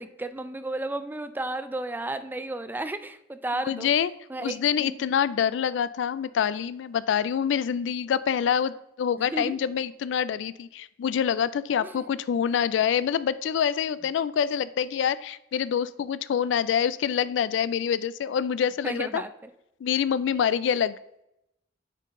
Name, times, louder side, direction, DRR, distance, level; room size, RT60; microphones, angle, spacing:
voice 1, 0.0-3.9 4.3-5.0 9.2-9.6 11.8-12.1 18.8-19.5, right 2 dB, 10° right, 11 dB, 0.3 m, -33 dB
voice 2, 3.7-4.1 4.4-19.2 19.8-21.0, left 8 dB, 70° left, 16 dB, 0.3 m, -26 dB
9.0 x 3.8 x 3.6 m, 0.84 s
head